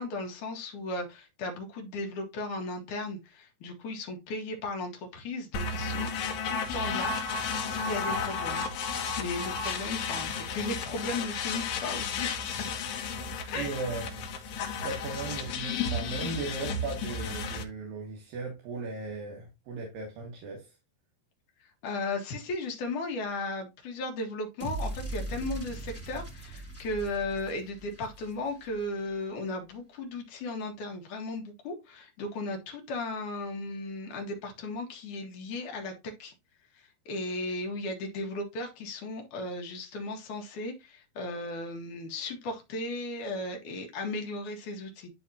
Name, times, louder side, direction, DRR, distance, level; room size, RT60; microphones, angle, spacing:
voice 1, 0.0-6.1 6.4-8.6 9.0-12.4 13.5-13.7 21.8-35.9 36.2-36.3 37.1-45.1, left 2 dB, 55° left, 2.9 m, -36 dB
sound 1, 5.5-17.6, left 4 dB, 75° left, 3.3 m, -33 dB
voice 2, 13.5-14.3 14.6-20.7, right 3 dB, 60° right, 3.2 m, -37 dB
sound 2, 24.6-28.8, right 2 dB, 5° left, 1.8 m, -39 dB
12.0 x 4.1 x 2.7 m
omnidirectional pair, 4.9 m